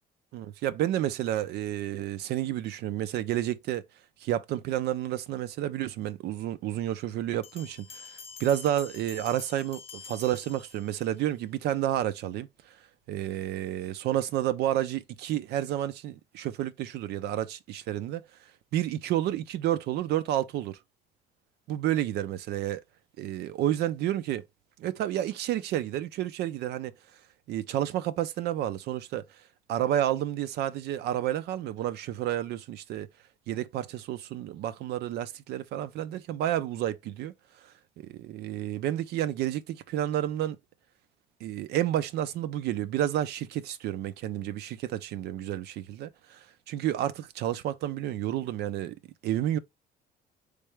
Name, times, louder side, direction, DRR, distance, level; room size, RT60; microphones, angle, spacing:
voice 1, 0.3-3.8 4.2-8.1 8.4-12.5 13.1-18.2 18.7-20.8 21.7-22.8 23.2-24.4 24.8-26.9 27.5-29.2 29.7-33.1 33.5-37.3 37.6-40.6 41.4-49.0 49.2-49.6, right 12 dB, 75° right, 0.5 m, -30 dB
Bell, 7.4-11.2, left 6 dB, 35° left, 0.6 m, -47 dB
4.5 x 3.3 x 3.3 m
cardioid pair, 110°, 17 cm